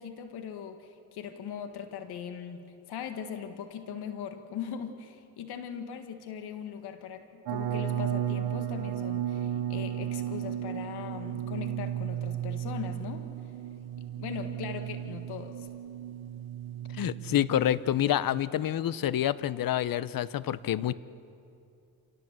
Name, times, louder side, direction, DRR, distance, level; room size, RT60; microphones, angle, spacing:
voice 1, 0.0-13.3 14.2-15.7, left 8 dB, 85° left, 7 dB, 1.9 m, -40 dB
sound 1, 7.5-18.4, right 11 dB, 70° right, 1.1 m, -34 dB
voice 2, 16.9-20.9, left 11 dB, 60° left, 17 dB, 0.9 m, -28 dB
27.0 x 18.0 x 7.5 m, 2.6 s
cardioid pair, 80°, 38 cm